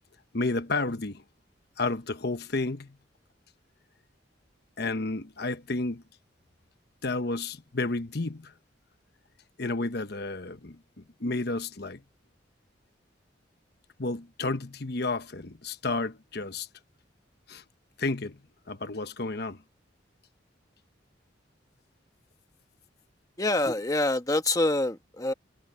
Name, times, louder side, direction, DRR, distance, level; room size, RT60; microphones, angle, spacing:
voice 1, 0.3-1.2 1.8-3.0 4.8-6.0 7.0-8.5 9.6-12.0 14.0-16.7 17.5-17.6 18.0-18.4 18.7-19.6, left 3 dB, 55° left, 1.1 m, -31 dB
voice 2, 23.4-25.3, left 2 dB, 20° left, 1.4 m, -26 dB
head